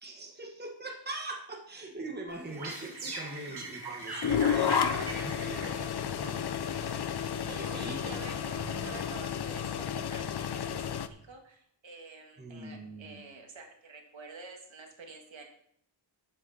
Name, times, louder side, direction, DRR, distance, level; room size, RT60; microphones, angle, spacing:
voice 1, 0.0-6.5 7.4-8.2 12.4-13.2, right 2 dB, 20° right, 1 dB, 1.5 m, -42 dB
sound 1, 2.3-9.6, right 3 dB, 55° right, 2.4 m, -42 dB
sound 2, 4.2-11.1, left 8 dB, 55° left, 0.7 m, -32 dB
voice 2, 7.8-8.4 8.7-15.4, right 4 dB, 70° right, 2 dB, 2.1 m, -49 dB
12.0 x 8.3 x 4.3 m, 0.68 s
wide cardioid pair, 155°, 48 cm